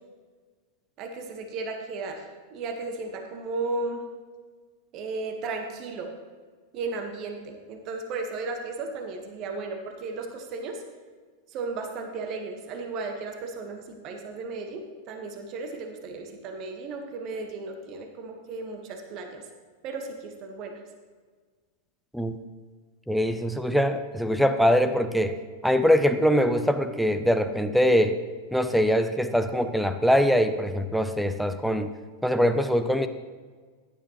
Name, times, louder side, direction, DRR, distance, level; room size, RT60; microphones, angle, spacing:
voice 1, 1.0-2.2 2.5-4.0 4.9-6.1 6.7-10.8 11.5-14.8 15.1-19.4 19.8-20.8, right 3 dB, 40° right, 4 dB, 1.5 m, -35 dB
voice 2, 23.1-25.3 25.6-28.2 28.5-31.9 32.2-33.1, equal, ahead, 9 dB, 0.6 m, -23 dB
16.0 x 10.0 x 3.1 m, 1.5 s
figure-of-eight pair, 90°, 0 cm